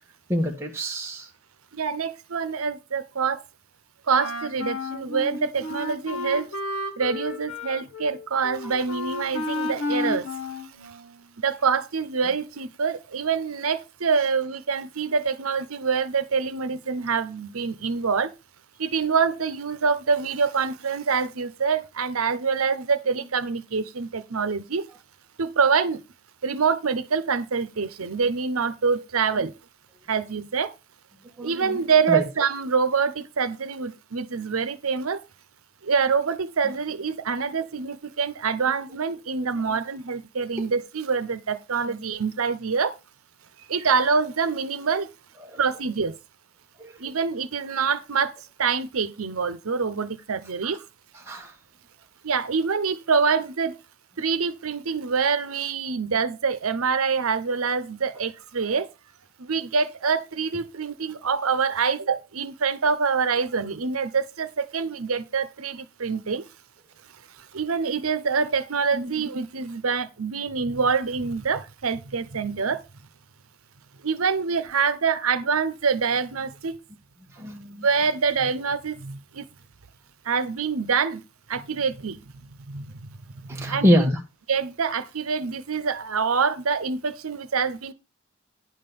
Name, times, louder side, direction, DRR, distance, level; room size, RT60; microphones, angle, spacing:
voice 1, 0.3-1.3 29.4-29.5 31.4-31.8 32.1-32.2 39.4-39.5 45.4-45.6 46.8-46.9 50.6-50.7 51.2-51.5 68.9-69.1 77.3-77.8 83.5-84.2, equal, 10° right, 1.2 m, -25 dB
voice 2, 1.7-3.4 4.1-6.5 7.0-10.3 11.4-18.3 18.8-24.9 25.4-26.0 26.4-29.5 30.1-30.7 31.4-35.2 35.8-42.9 43.7-45.1 45.6-46.1 47.0-48.3 48.6-50.8 52.2-53.8 54.2-58.9 59.4-66.4 67.5-72.8 74.0-76.8 77.8-79.4 80.3-81.2 81.5-82.2 82.7-83.1 83.5-84.0 84.5-87.9, right 5 dB, 85° right, 0.8 m, -25 dB
Wind instrument woodwind instrument, 4.1-11.4, left 2 dB, 80° left, 1.2 m, -32 dB
9.8 x 3.8 x 6.9 m
head